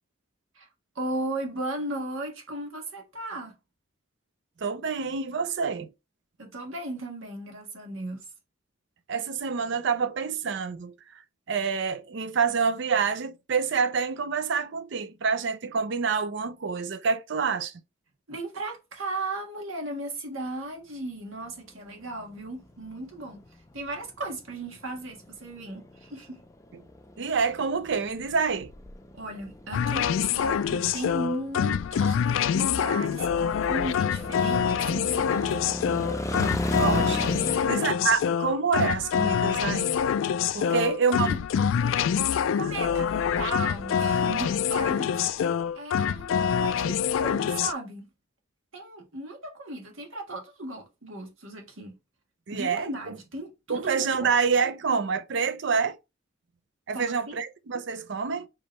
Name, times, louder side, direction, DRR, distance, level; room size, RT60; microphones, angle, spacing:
voice 1, 0.9-3.5 6.4-8.3 18.3-23.4 23.7-26.4 29.1-35.8 37.5-38.0 40.6-41.5 42.5-45.5 45.7-48.1 48.7-52.0 52.5-54.3 56.9-57.4, right 2 dB, 85° right, 1.5 m, -36 dB
voice 2, 4.6-5.9 9.1-11.2 11.5-17.7 27.2-28.7 36.7-40.0 40.5-41.3 52.5-52.9 53.7-56.0 56.9-58.5, right 5 dB, 60° right, 0.5 m, -27 dB
sound 1, 21.5-37.6, left 1 dB, 15° left, 0.5 m, -36 dB
sound 2, 29.7-47.7, left 7 dB, 75° left, 0.3 m, -26 dB
4.7 x 3.0 x 3.1 m
head